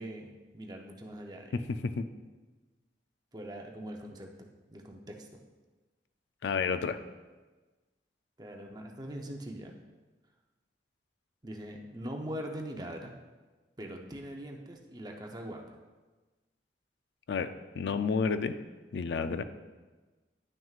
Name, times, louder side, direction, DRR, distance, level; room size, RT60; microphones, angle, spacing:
voice 1, 0.0-1.7 3.3-4.3 4.7-5.3 8.4-9.7 11.4-13.1 13.8-15.8 19.2-19.4, right 1 dB, 25° right, 2 dB, 0.7 m, -42 dB
voice 2, 1.5-2.0 6.4-7.0 17.3-17.5 17.8-18.6 18.9-19.4, left 5 dB, 75° left, 11 dB, 0.4 m, -30 dB
10.5 x 6.1 x 2.4 m, 1.3 s
head